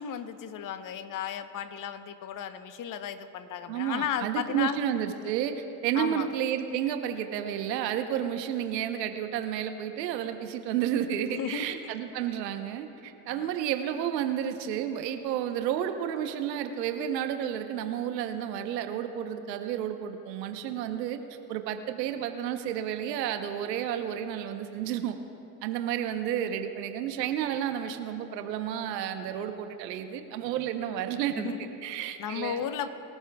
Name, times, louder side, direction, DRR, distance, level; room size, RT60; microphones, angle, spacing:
voice 1, 0.0-4.8 5.9-6.3 11.3-11.9 13.3-13.5 31.4-31.7 32.2-32.9, left 9 dB, 40° left, 10 dB, 0.9 m, -34 dB
voice 2, 3.7-21.2 21.5-25.2 25.6-31.5 31.8-32.6, right 10 dB, 85° right, 7 dB, 1.0 m, -31 dB
22.5 x 13.5 x 2.3 m, 3.0 s
supercardioid pair, 95°, 48 cm